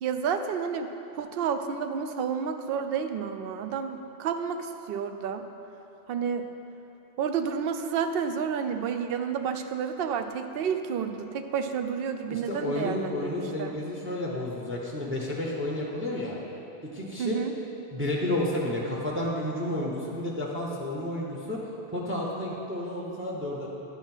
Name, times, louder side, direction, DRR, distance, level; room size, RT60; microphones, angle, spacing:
voice 1, 0.0-5.5 6.1-6.4 7.2-13.7 17.2-17.5, right 7 dB, 65° right, 7 dB, 0.7 m, -30 dB
voice 2, 12.3-16.4 16.9-17.4 17.9-21.6 21.9-23.7, left 1 dB, 15° right, -3 dB, 0.8 m, -31 dB
10.5 x 5.8 x 4.4 m, 3.0 s
omnidirectional pair, 1.1 m